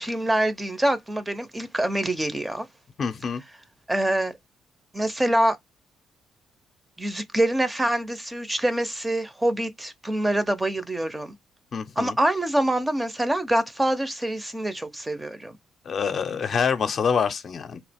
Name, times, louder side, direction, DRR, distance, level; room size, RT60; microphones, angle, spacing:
voice 1, 0.0-2.7 3.9-4.3 4.9-5.6 7.0-11.3 12.0-15.6, right 1 dB, 15° right, 0.5 m, -25 dB
voice 2, 3.0-3.4 11.7-12.2 15.9-17.8, left 6 dB, 50° left, 0.5 m, -26 dB
2.9 x 2.3 x 3.4 m
cardioid pair, 90°, 0 cm